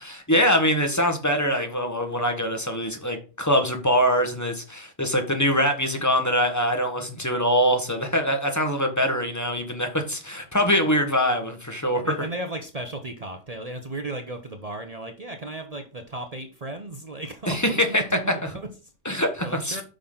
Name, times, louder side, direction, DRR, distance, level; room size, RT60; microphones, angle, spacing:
voice 1, 0.0-12.1 17.5-18.0 19.0-19.8, equal, 15° left, 4 dB, 1.3 m, -23 dB
voice 2, 11.9-18.9 19.4-19.8, right 2 dB, 35° right, 6 dB, 0.8 m, -35 dB
8.6 x 5.8 x 3.9 m, 0.35 s
omnidirectional pair, 1.2 m